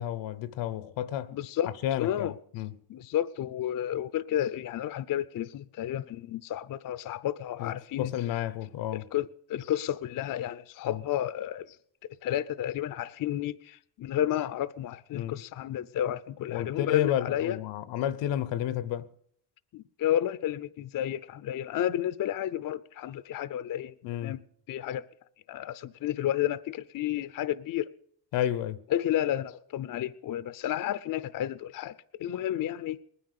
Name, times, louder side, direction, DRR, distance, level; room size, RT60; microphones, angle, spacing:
voice 1, 0.0-1.3 1.8-2.8 7.6-9.1 10.8-11.0 15.1-15.4 16.5-19.1 24.0-24.4 28.3-28.8, left 11 dB, 80° left, 0.9 m, -31 dB
voice 2, 1.3-1.7 2.0-2.3 2.9-8.1 8.9-11.8 12.2-17.6 19.7-23.9 24.2-24.4 24.7-25.0 25.5-27.9 28.9-33.1, left 11 dB, 50° left, 0.6 m, -31 dB
20.0 x 9.8 x 6.6 m
cardioid pair, 90°, 43 cm